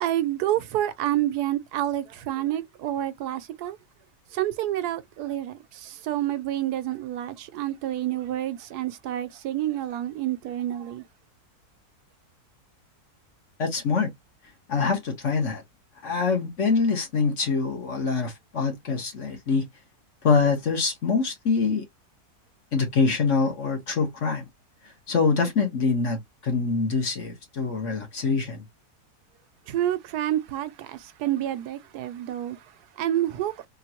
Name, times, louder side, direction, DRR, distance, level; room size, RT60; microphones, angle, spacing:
voice 1, 0.0-3.8 4.3-11.0 29.7-33.7, right 13 dB, 85° right, 1.1 m, -28 dB
voice 2, 13.6-14.1 14.7-15.6 16.0-19.6 20.2-21.8 22.7-24.4 25.1-28.6, left 4 dB, 50° left, 1.5 m, -24 dB
3.7 x 2.5 x 2.8 m
omnidirectional pair, 1.6 m